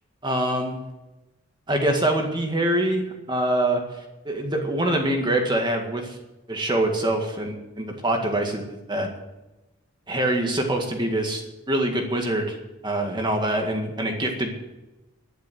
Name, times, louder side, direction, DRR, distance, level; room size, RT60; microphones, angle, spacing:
voice 1, 0.2-0.8 1.7-3.8 4.3-6.2 6.5-9.1 10.1-12.6 12.8-14.5, right 1 dB, 20° right, 2 dB, 1.9 m, -24 dB
11.5 x 11.0 x 8.0 m, 1.0 s
head